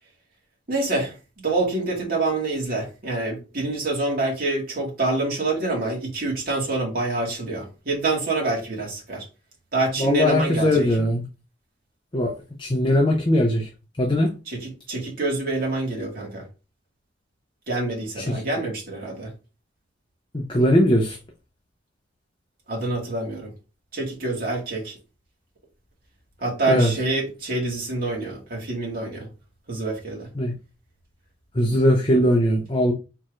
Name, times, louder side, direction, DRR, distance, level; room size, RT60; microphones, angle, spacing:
voice 1, 0.7-1.2 1.4-9.3 9.7-10.9 14.5-16.4 17.7-19.3 22.7-23.5 23.9-24.9 26.4-29.3 29.7-30.3, right 2 dB, 50° right, 1.9 m, -26 dB
voice 2, 10.0-11.2 12.1-12.3 12.6-13.7 14.0-14.3 18.2-18.4 20.3-21.2 26.7-26.9 30.4-30.5 31.5-32.9, left 1 dB, 25° left, 0.6 m, -20 dB
4.7 x 4.4 x 2.5 m
head